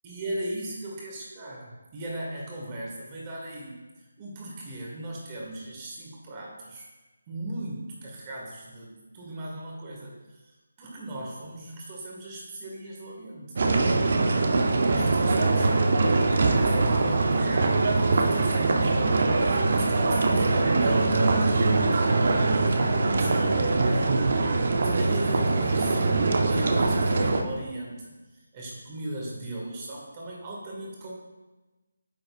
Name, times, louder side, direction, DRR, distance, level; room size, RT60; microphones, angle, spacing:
voice 1, 0.0-6.9 7.3-10.4 10.8-13.5 14.6-16.0 16.3-22.3 23.1-24.0 25.0-28.1 28.5-31.1, right 1 dB, 25° right, -3 dB, 1.8 m, -38 dB
sound 1, 13.6-27.4, right 3 dB, 50° right, 0.7 m, -22 dB
8.8 x 6.3 x 2.5 m, 1.1 s
figure-of-eight pair, 160°, 0 cm